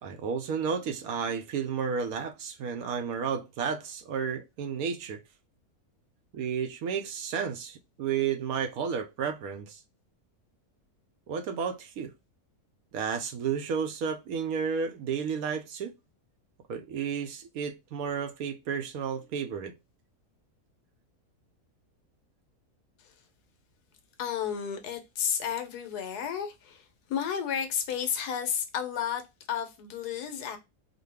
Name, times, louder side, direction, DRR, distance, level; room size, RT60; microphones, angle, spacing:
voice 1, 0.0-5.2 6.3-9.8 11.3-12.1 12.9-15.9 16.7-19.7, right 6 dB, 75° right, 1.0 m, -32 dB
voice 2, 24.2-29.2 29.5-30.6, left 8 dB, 85° left, 1.3 m, -32 dB
4.0 x 2.2 x 3.2 m
omnidirectional pair, 1.6 m